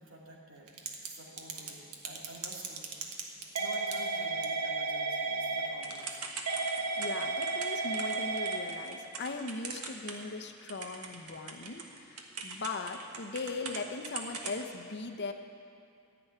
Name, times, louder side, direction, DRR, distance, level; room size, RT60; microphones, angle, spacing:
voice 1, 0.0-2.9 3.4-6.2, right 1 dB, 65° right, -3 dB, 2.5 m, -50 dB
Typing / Telephone, 0.7-1.1 1.4-10.4 10.7-13.8 14.0-14.6, right 4 dB, 90° right, 1.4 m, -34 dB
voice 2, 6.7-15.3, left 3 dB, 50° left, 6 dB, 0.8 m, -39 dB
14.0 x 7.0 x 9.3 m, 2.6 s
head